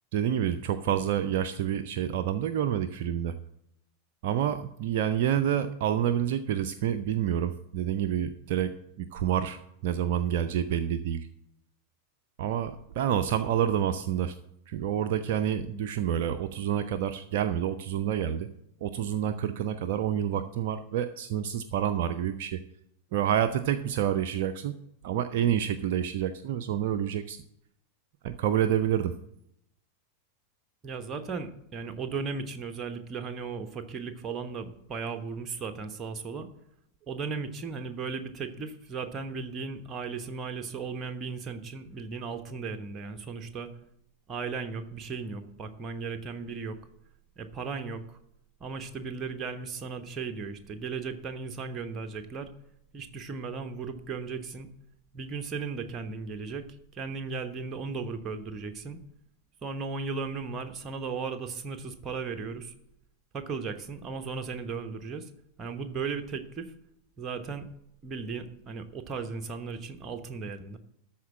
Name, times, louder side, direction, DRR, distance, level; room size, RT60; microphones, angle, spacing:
voice 1, 0.1-3.4 4.2-11.3 12.4-14.4 14.7-18.5 18.8-22.6 23.1-24.8 25.0-27.4 28.2-29.1, right 10 dB, 50° right, 9 dB, 0.5 m, -28 dB
voice 2, 30.8-36.5 37.1-43.7 44.3-46.8 47.4-48.2 48.6-52.5 52.9-54.7 55.1-56.7 56.9-59.0 59.6-62.7 63.3-65.3 65.6-66.7 67.2-67.7 68.0-70.8, right 5 dB, 25° right, 7 dB, 1.1 m, -36 dB
13.0 x 4.4 x 7.3 m, 0.78 s
figure-of-eight pair, 90°, 0 cm